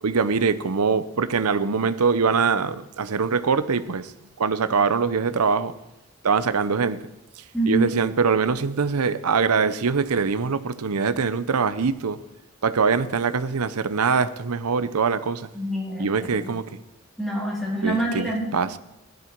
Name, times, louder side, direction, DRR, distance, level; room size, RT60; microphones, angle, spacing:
voice 1, 0.0-4.1 4.4-5.7 6.2-7.0 7.7-12.2 12.6-15.5 16.0-16.7 17.8-18.8, right 5 dB, 85° right, 0.7 m, -23 dB
voice 2, 7.5-7.9 15.5-16.3 17.2-18.5, right 1 dB, ahead, 3.7 m, -26 dB
16.0 x 12.0 x 4.6 m
head